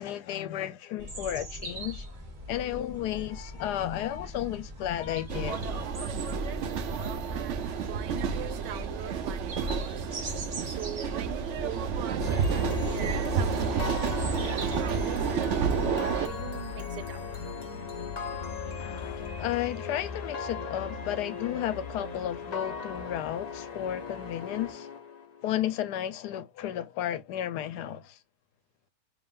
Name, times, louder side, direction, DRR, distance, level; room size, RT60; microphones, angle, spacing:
voice 1, 0.0-2.1 2.5-5.6 18.8-25.0 25.4-28.2, left 11 dB, 75° left, 1.1 m, -33 dB
sound 1, 1.0-15.1, equal, 30° right, 1.0 m, -42 dB
sound 2, 5.3-16.3, right 6 dB, 60° right, 0.7 m, -30 dB
voice 2, 7.3-10.1 10.6-15.5 16.0-17.2, right 11 dB, 85° right, 1.3 m, -42 dB
sound 3, 12.2-25.5, left 5 dB, 55° left, 0.4 m, -37 dB
5.5 x 3.0 x 2.3 m
omnidirectional pair, 1.9 m